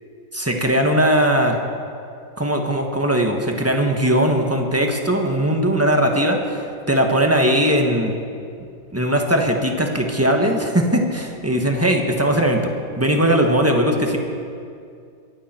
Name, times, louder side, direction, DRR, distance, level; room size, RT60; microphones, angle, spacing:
voice 1, 0.3-1.6 2.4-8.1 8.9-12.7 13.0-14.2, right 1 dB, 10° right, 2 dB, 1.3 m, -19 dB
22.5 x 14.0 x 4.5 m, 2.4 s
omnidirectional pair, 2.0 m